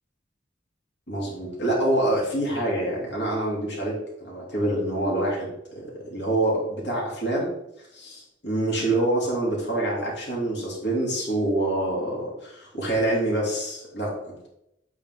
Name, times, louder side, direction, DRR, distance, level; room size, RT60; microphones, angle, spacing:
voice 1, 1.1-7.5 7.9-14.5, right 1 dB, 75° left, -4 dB, 3.0 m, -26 dB
8.6 x 4.8 x 3.8 m, 0.82 s
head